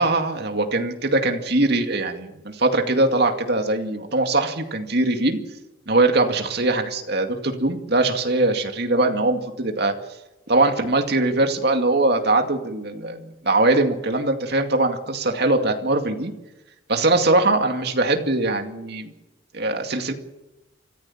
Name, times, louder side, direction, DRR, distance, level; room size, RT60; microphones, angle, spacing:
voice 1, 0.0-5.4 5.9-9.9 10.5-16.3 16.9-19.1 19.5-20.1, right 2 dB, 55° right, 5 dB, 2.3 m, -21 dB
25.5 x 15.0 x 7.3 m, 1.0 s
head